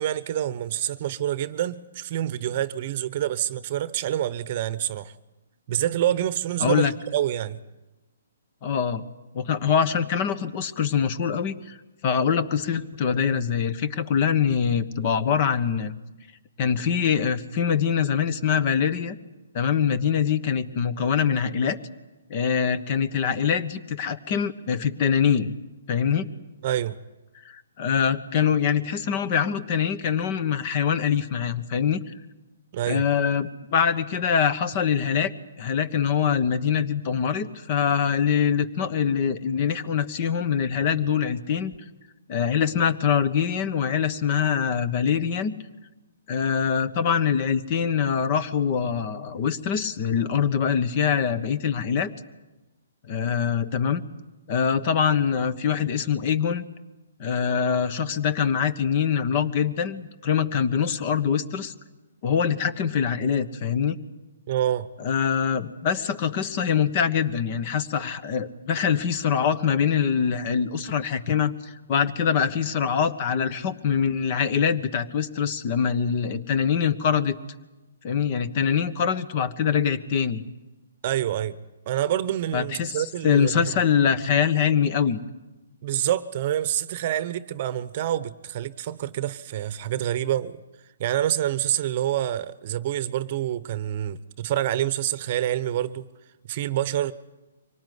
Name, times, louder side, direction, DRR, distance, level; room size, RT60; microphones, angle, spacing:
voice 1, 0.0-5.1 5.7-7.6 26.6-27.0 32.7-33.1 64.5-64.9 81.0-81.6 81.9-83.5 85.8-90.6 91.0-96.1 96.5-97.1, right 12 dB, 40° right, 0.9 m, -27 dB
voice 2, 6.6-6.9 8.6-9.0 9.3-11.8 12.0-15.9 16.6-19.2 19.5-21.8 22.3-25.5 25.9-26.3 27.4-32.0 32.9-35.3 35.6-41.7 42.3-45.5 46.3-52.1 53.1-54.0 54.5-56.6 57.2-61.7 62.2-63.9 65.0-77.4 78.0-80.4 82.5-85.2, left 7 dB, 35° left, 1.3 m, -24 dB
24.5 x 18.5 x 9.6 m
hypercardioid pair, 150°, 0 cm